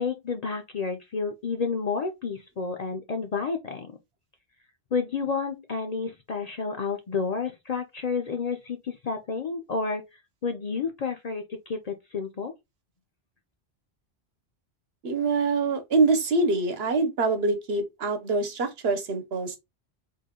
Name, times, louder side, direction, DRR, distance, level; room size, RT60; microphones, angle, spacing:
voice 1, 0.0-3.9 4.9-10.1 10.4-12.5, left 5 dB, 50° left, 0.5 m, -30 dB
voice 2, 15.0-19.6, right 3 dB, 70° right, 1.0 m, -25 dB
3.6 x 2.2 x 3.6 m
omnidirectional pair, 1.1 m